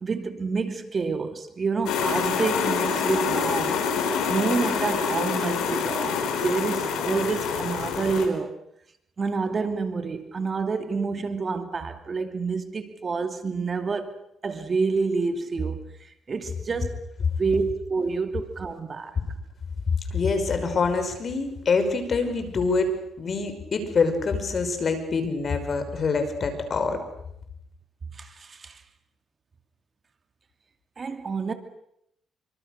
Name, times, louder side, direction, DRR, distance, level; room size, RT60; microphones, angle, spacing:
voice 1, 0.0-8.6 9.2-15.8 16.3-17.0 17.4-19.2 28.1-28.8 31.0-31.5, right 4 dB, 40° right, 2.6 m, -28 dB
sound 1, 1.9-8.3, left 6 dB, 85° left, 5.3 m, -26 dB
voice 2, 20.1-27.0, left 4 dB, 45° left, 5.8 m, -25 dB
27.5 x 25.0 x 6.8 m
cardioid pair, 90°, 0 cm